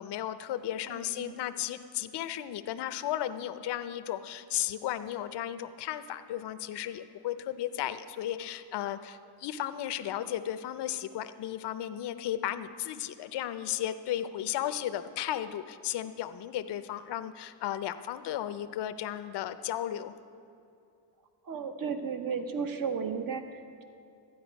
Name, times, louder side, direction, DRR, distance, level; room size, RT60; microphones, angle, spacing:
voice 1, 0.0-20.1, left 11 dB, 60° left, 11 dB, 0.6 m, -34 dB
voice 2, 0.9-1.3 21.4-23.8, right 6 dB, 45° right, 7 dB, 1.0 m, -34 dB
12.5 x 9.4 x 5.2 m, 2.6 s
cardioid pair, 110°, 47 cm